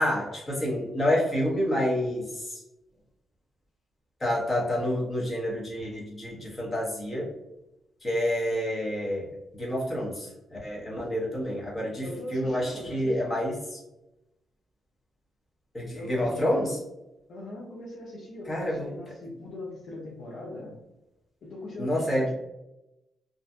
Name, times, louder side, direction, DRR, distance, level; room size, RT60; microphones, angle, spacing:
voice 1, 0.0-2.6 4.2-7.3 8.0-13.8 15.7-16.8 18.5-18.9 21.8-22.3, equal, 25° left, -5 dB, 1.0 m, -28 dB
voice 2, 12.0-13.5 15.9-16.7 17.3-20.8 21.4-22.3, left 1 dB, 70° left, -3 dB, 0.6 m, -40 dB
2.6 x 2.4 x 2.2 m, 0.93 s
cardioid pair, 110°, 0 cm